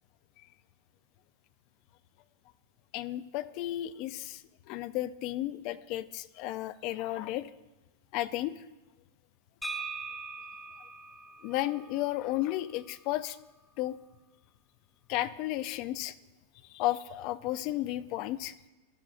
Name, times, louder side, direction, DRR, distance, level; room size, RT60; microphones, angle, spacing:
voice 1, 2.9-7.5 8.1-8.5 11.4-13.4 13.8-14.0 15.1-16.1 16.7-18.5, left 15 dB, 45° left, 15 dB, 0.4 m, -33 dB
sound 1, 9.6-13.4, right 3 dB, ahead, 0.7 m, -42 dB
14.0 x 10.5 x 2.5 m, 1.1 s
supercardioid pair, 145°, 0 cm